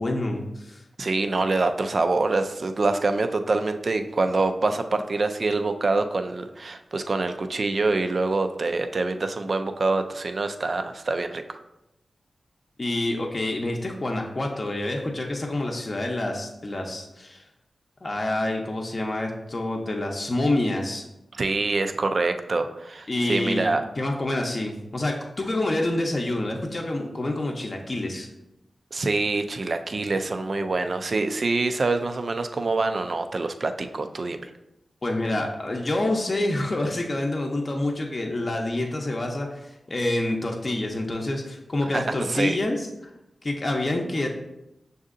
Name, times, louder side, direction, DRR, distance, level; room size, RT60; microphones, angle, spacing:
voice 1, 0.0-0.8 12.8-17.4 18.0-21.0 23.1-28.3 35.0-42.9 43.4-44.3, left 1 dB, 45° left, 1 dB, 0.6 m, -27 dB
voice 2, 1.0-11.6 21.3-23.8 28.9-34.5 41.9-42.0 42.3-42.6, right 3 dB, 60° right, 7 dB, 0.3 m, -25 dB
6.3 x 2.7 x 2.5 m, 0.88 s
cardioid pair, 50°, 0 cm